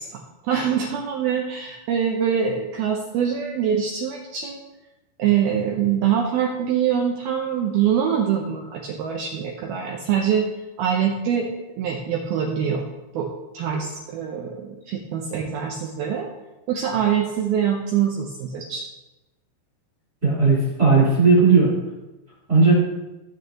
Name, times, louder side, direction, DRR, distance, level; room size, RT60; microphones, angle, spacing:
voice 1, 0.0-4.6 5.2-10.5 10.8-12.8 13.1-13.3 13.5-16.3 16.7-18.9, right 8 dB, 75° right, 0 dB, 2.2 m, -24 dB
voice 2, 20.2-21.7 22.5-22.7, right 4 dB, 20° right, -7 dB, 4.1 m, -16 dB
17.5 x 8.4 x 3.0 m, 1.0 s
omnidirectional pair, 5.5 m